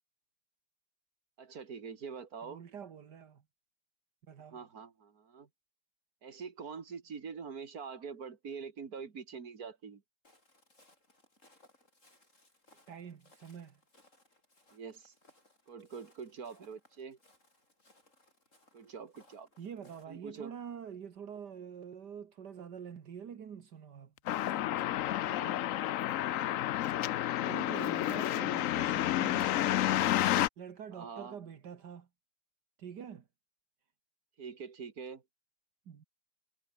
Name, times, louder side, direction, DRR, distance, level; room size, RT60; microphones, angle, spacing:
voice 1, 1.4-2.6 4.5-5.5 6.2-10.0 14.7-15.1 15.7-17.2 18.7-19.5 20.1-20.5 25.2-25.6 30.9-31.4 34.4-35.2, right 6 dB, 55° right, 2.7 m, -45 dB
voice 2, 2.4-3.4 4.3-4.6 12.9-13.8 19.6-24.4 27.4-30.0 30.6-32.1 32.8-33.3 35.9-36.0, right 7 dB, 75° right, 2.1 m, -46 dB
Walk footsteps, 10.2-20.0, left 1 dB, 45° left, 7.9 m, -66 dB
sound 1, 24.3-30.5, left 13 dB, 65° left, 0.8 m, -30 dB
omnidirectional pair, 1.9 m